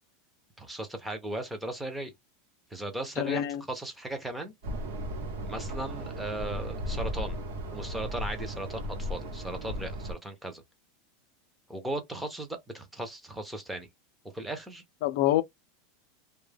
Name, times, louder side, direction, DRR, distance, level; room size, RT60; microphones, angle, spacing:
voice 1, 0.6-2.1 2.7-4.5 5.5-7.4 7.7-10.6 11.7-13.9 14.3-14.8, right 1 dB, 5° right, 0.5 m, -37 dB
voice 2, 3.2-3.6 15.0-15.4, left 13 dB, 50° left, 0.3 m, -26 dB
sound 1, 4.6-10.1, equal, 65° right, 0.9 m, -35 dB
2.2 x 2.1 x 3.2 m
supercardioid pair, 180°, 0 cm